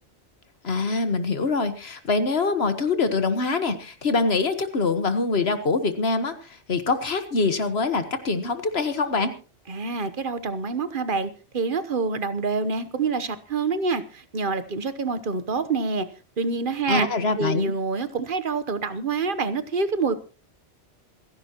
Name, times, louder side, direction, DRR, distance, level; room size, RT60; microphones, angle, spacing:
voice 1, 0.6-6.3 6.7-9.3 16.9-17.7, left 3 dB, 65° left, 10 dB, 1.6 m, -24 dB
voice 2, 9.7-16.1 16.4-17.1 17.4-20.1, right 4 dB, 50° right, 13 dB, 1.1 m, -26 dB
27.0 x 11.0 x 2.9 m, 0.34 s
omnidirectional pair, 1.1 m